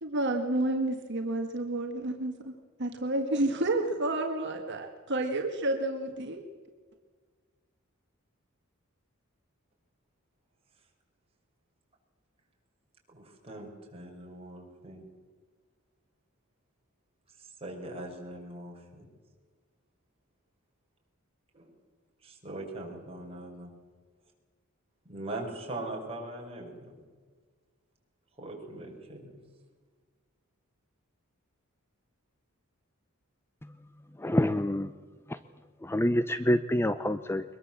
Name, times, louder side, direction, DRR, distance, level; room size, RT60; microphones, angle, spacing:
voice 1, 0.0-2.5 2.8-6.4, right 2 dB, 55° right, 4 dB, 1.8 m, -30 dB
voice 2, 13.1-15.1 17.4-19.1 21.5-21.7 22.2-23.7 25.1-27.0 28.4-29.3, right 2 dB, 30° right, 0 dB, 5.6 m, -41 dB
voice 3, 34.2-34.9 35.9-37.4, left 1 dB, 10° left, 12 dB, 0.6 m, -26 dB
23.5 x 21.5 x 7.5 m, 1.5 s
head